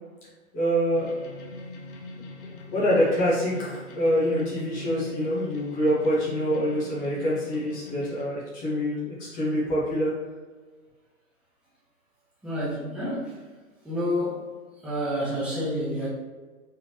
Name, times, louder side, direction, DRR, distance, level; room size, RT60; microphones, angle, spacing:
voice 1, 0.5-1.2 2.7-10.1, equal, 20° left, -7 dB, 1.5 m, -25 dB
sound 1, 0.9-8.2, left 2 dB, 40° left, 0.7 m, -41 dB
voice 2, 12.4-13.4 13.8-16.1, equal, ahead, -8 dB, 0.6 m, -29 dB
4.1 x 4.0 x 3.0 m, 1.4 s
figure-of-eight pair, 125°, 42 cm